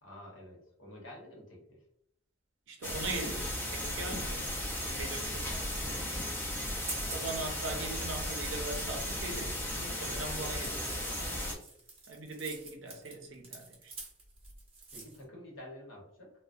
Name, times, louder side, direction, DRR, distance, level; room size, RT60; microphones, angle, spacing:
voice 1, 0.0-1.8 11.5-11.6 14.9-16.3, left 1 dB, 80° left, 0.9 m, -49 dB
voice 2, 2.7-4.6 4.8-5.6 7.1-11.4 12.1-13.9, right 3 dB, 65° right, 0.5 m, -41 dB
sound 1, 2.8-11.5, left 1 dB, 10° left, 0.4 m, -36 dB
sound 2, 6.1-15.2, right 3 dB, 30° right, 0.7 m, -48 dB
2.6 x 2.1 x 2.3 m
head